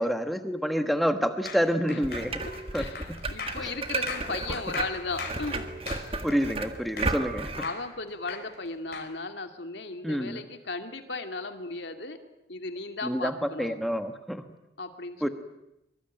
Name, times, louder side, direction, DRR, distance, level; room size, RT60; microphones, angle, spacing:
voice 1, 0.0-2.3 2.7-2.8 3.6-3.7 6.2-7.5 10.0-10.4 13.0-14.4 15.2-15.3, equal, ahead, 7 dB, 1.3 m, -28 dB
sound 1, 1.5-7.3 7.6-9.1, left 5 dB, 55° left, 5.0 m, -39 dB
sound 2, 2.0-7.6, right 3 dB, 30° right, 1.7 m, -34 dB
voice 2, 2.5-5.7 7.5-12.2 12.5-13.8 14.8-15.3, left 3 dB, 70° left, 6 dB, 2.4 m, -36 dB
24.0 x 24.0 x 9.0 m, 0.86 s
head